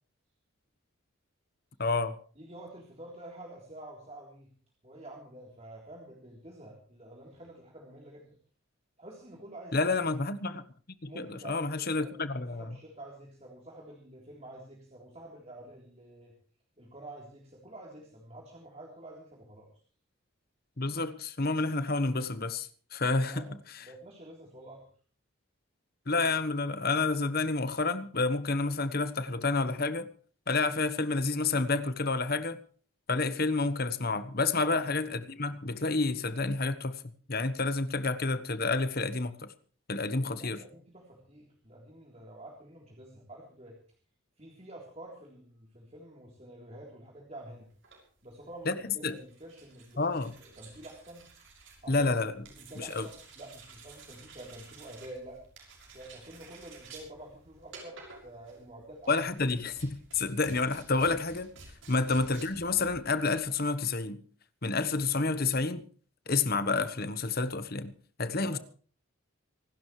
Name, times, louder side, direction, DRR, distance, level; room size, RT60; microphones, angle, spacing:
voice 1, 1.8-2.1 9.7-10.6 11.0-12.6 20.8-23.5 23.7-23.8 26.1-30.1 30.5-32.6 33.1-37.0 37.3-39.5 39.9-40.6 48.7-48.8 49.0-49.2 50.0-50.3 51.9-52.3 52.8-53.1 59.1-61.5 61.9-64.2 64.6-65.8 66.3-67.9 68.2-68.6, left 3 dB, 45° left, 1.1 m, -29 dB
voice 2, 2.4-4.5 4.8-8.4 9.0-9.9 11.1-12.2 12.5-16.3 16.8-19.7 23.3-24.8 34.6-34.8 40.1-43.8 44.4-47.7 48.2-50.1 50.4-51.3 51.8-52.1 52.4-55.4 55.9-59.1 62.0-62.1 68.4-68.6, right 1 dB, 30° right, 3.6 m, -48 dB
sound 1, 47.7-63.7, right 3 dB, 55° right, 6.3 m, -53 dB
26.5 x 12.5 x 3.2 m
head